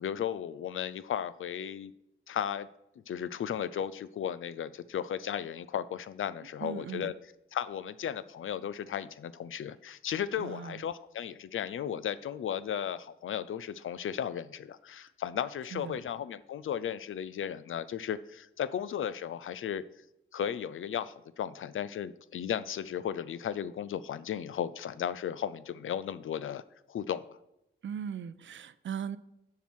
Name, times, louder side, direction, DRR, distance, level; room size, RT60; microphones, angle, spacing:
voice 1, 0.0-1.9 2.3-2.7 3.1-7.1 7.5-19.8 20.3-26.6 26.9-27.4, left 9 dB, 80° left, 15 dB, 0.4 m, -35 dB
voice 2, 6.6-7.1 10.4-10.8 15.7-16.0 27.8-29.2, right 8 dB, 70° right, 15 dB, 0.5 m, -39 dB
7.2 x 5.8 x 6.2 m, 0.85 s
wide cardioid pair, 120°, 20 cm